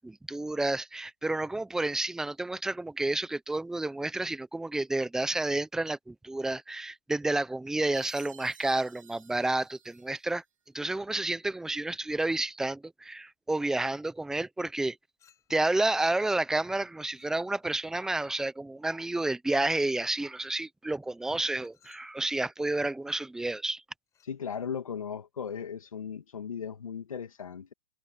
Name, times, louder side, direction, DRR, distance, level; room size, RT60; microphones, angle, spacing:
voice 1, 0.0-10.4 10.7-15.0 15.5-23.8, right 2 dB, 5° right, 0.9 m, -30 dB
Chime, 7.9-10.4, right 8 dB, 75° right, 2.6 m, -53 dB
Chink clink, 15.2-15.8 17.1-17.8 19.5-19.8 21.5-22.2 24.1-24.4, left 9 dB, 20° left, 8.0 m, -66 dB
voice 2, 24.3-27.7, left 7 dB, 90° left, 2.1 m, -37 dB
hypercardioid pair, 140°, 17 cm